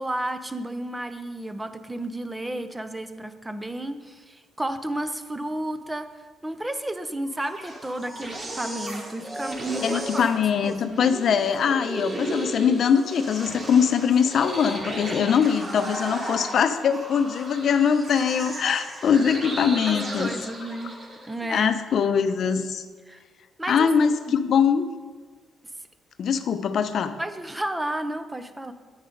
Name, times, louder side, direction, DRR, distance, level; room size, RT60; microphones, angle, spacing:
voice 1, 0.0-6.1 6.4-10.3 10.6-11.1 15.1-15.4 19.9-20.9 21.3-21.7 23.1-23.2 23.6-23.9 24.3-24.4 27.2-28.7, right 1 dB, 15° right, 10 dB, 0.7 m, -32 dB
sound 1, 7.3-21.4, right 1 dB, 40° right, 2.8 m, -35 dB
voice 2, 9.8-20.3 21.5-22.8 23.7-24.9 26.2-27.1, left 7 dB, 60° left, 10 dB, 0.7 m, -22 dB
9.1 x 8.8 x 5.2 m, 1.4 s
cardioid pair, 90°, 0 cm